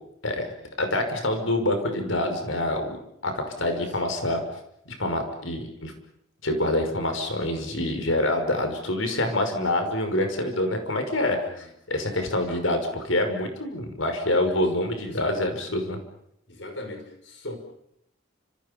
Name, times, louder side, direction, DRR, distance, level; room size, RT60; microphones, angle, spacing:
voice 1, 0.8-3.0 3.2-4.4 4.9-5.9 6.4-16.0, left 1 dB, 85° left, 6 dB, 5.8 m, -26 dB
voice 2, 3.6-3.9 9.6-9.9 11.4-11.5 12.0-12.2 12.5-12.6 14.4-14.7 14.9-15.3 16.5-17.6, left 1 dB, 65° left, 6 dB, 5.7 m, -40 dB
29.5 x 27.5 x 5.4 m, 0.75 s
head